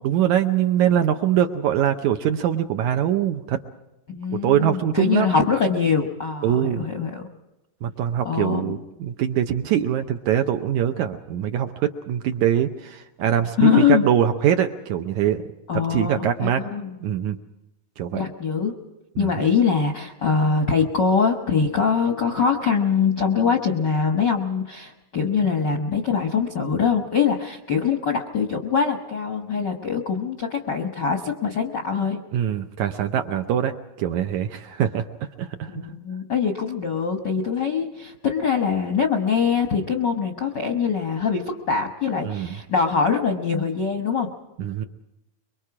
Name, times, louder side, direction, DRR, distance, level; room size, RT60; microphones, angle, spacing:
voice 1, 0.0-3.6 4.4-5.5 6.4-6.9 7.8-15.4 15.7-16.6 17.0-17.4 18.0-18.2 19.2-19.3 32.3-35.1 35.4-35.8 42.2-42.6 44.6-44.9, right 10 dB, 70° right, 7 dB, 2.0 m, -23 dB
voice 2, 4.1-7.3 8.2-8.7 13.6-14.1 15.7-16.9 18.1-18.7 19.2-32.2 35.7-44.3, left 6 dB, 55° left, 4 dB, 1.2 m, -23 dB
25.0 x 23.5 x 4.9 m, 0.96 s
omnidirectional pair, 4.0 m